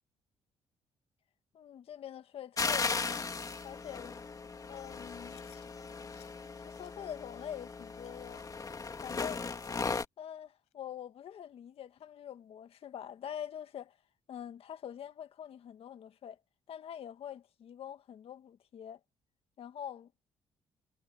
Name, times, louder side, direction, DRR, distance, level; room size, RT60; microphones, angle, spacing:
voice 1, 1.5-3.3 3.6-4.1 4.7-5.4 6.6-8.4 9.0-9.4 10.2-14.0 14.3-16.4 16.7-19.0 19.6-20.1, left 9 dB, 65° left, 1.9 m, -45 dB
sound 1, 2.6-10.0, left 4 dB, 35° left, 2.6 m, -37 dB
Chewing mastication, 5.3-5.7 6.1-6.3 6.8-7.0 7.4-7.5 8.0-8.2 8.7-8.8 9.2-9.5 9.9-10.0 10.7-10.8 11.3-11.4 12.0-12.1, left 15 dB, 85° left, 7.4 m, -62 dB
supercardioid pair, 75°, 11 cm